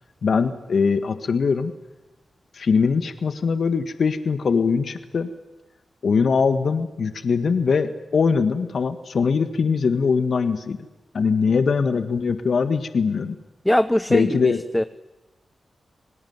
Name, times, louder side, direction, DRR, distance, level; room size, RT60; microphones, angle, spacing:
voice 1, 0.2-1.7 2.5-5.3 6.0-10.8 11.1-13.3 14.1-14.6, left 5 dB, 70° left, 10 dB, 1.7 m, -21 dB
voice 2, 13.7-14.8, left 1 dB, 10° left, 13 dB, 0.9 m, -21 dB
27.0 x 19.0 x 9.7 m, 1.0 s
cardioid pair, 45°, 0 cm